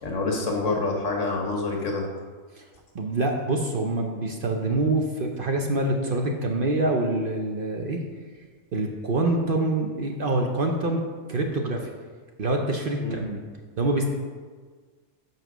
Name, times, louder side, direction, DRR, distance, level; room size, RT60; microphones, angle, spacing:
voice 1, 0.0-2.0 13.0-13.2, left 3 dB, 70° left, 1 dB, 1.6 m, -27 dB
voice 2, 2.9-8.0 8.7-11.0 11.3-11.9 12.4-13.4 13.8-14.1, right 2 dB, 50° right, 2 dB, 0.8 m, -25 dB
6.0 x 5.6 x 6.1 m, 1.5 s
omnidirectional pair, 1.3 m